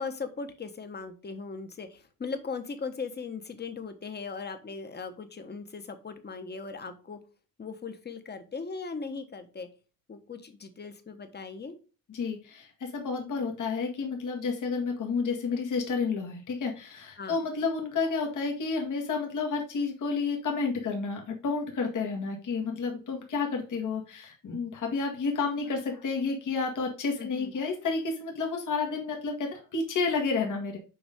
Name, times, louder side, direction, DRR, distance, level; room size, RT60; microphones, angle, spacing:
voice 1, 0.0-7.2 7.6-9.7 10.1-11.8 17.2-17.4 27.2-27.5, left 4 dB, 30° left, 8 dB, 1.2 m, -38 dB
voice 2, 12.1-30.8, left 4 dB, 60° left, 1 dB, 2.0 m, -30 dB
7.0 x 5.3 x 3.6 m, 0.34 s
cardioid pair, 120°, 34 cm